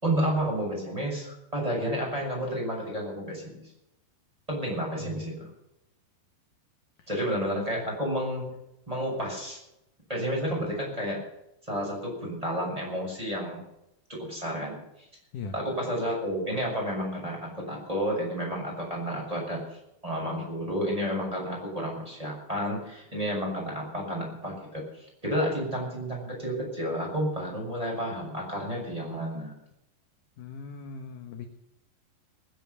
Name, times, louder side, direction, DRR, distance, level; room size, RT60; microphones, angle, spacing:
voice 1, 0.0-3.6 4.5-5.5 7.1-8.5 8.9-9.6 10.1-11.2 11.7-13.6 14.1-14.8 15.5-29.5, equal, 5° right, -2 dB, 6.7 m, -31 dB
voice 2, 30.4-31.5, left 5 dB, 65° left, 5 dB, 2.3 m, -40 dB
20.5 x 10.5 x 5.6 m, 0.84 s
omnidirectional pair, 5.0 m